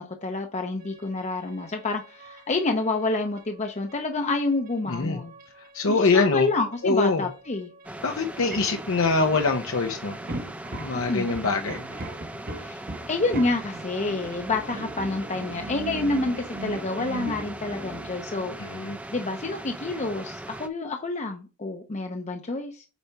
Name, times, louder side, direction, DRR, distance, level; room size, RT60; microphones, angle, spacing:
voice 1, 0.0-5.3 5.9-7.7 10.9-11.3 12.6-12.8 13.1-18.6 19.1-22.9, left 3 dB, 35° left, 0.7 m, -28 dB
sound 1, 0.8-18.6, right 2 dB, 45° right, 1.0 m, -41 dB
voice 2, 4.9-5.2 5.7-6.5 6.8-7.2 8.0-10.2 10.8-11.8 18.6-19.0, left 3 dB, 85° left, 0.8 m, -24 dB
sound 2, 7.8-20.7, right 1 dB, 5° right, 0.5 m, -39 dB
8.3 x 4.2 x 3.4 m
head